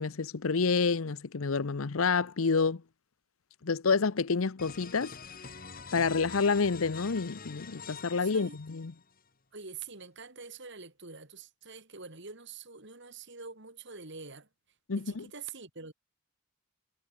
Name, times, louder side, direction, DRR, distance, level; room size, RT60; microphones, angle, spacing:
voice 1, 0.0-2.8 3.6-5.1 5.9-8.9 14.9-15.3, left 4 dB, 80° left, 0.8 m, -28 dB
sound 1, 4.6-9.2, left 5 dB, 45° left, 3.9 m, -45 dB
voice 2, 8.1-8.6 9.5-14.5 14.9-15.9, right 5 dB, 55° right, 3.6 m, -45 dB
head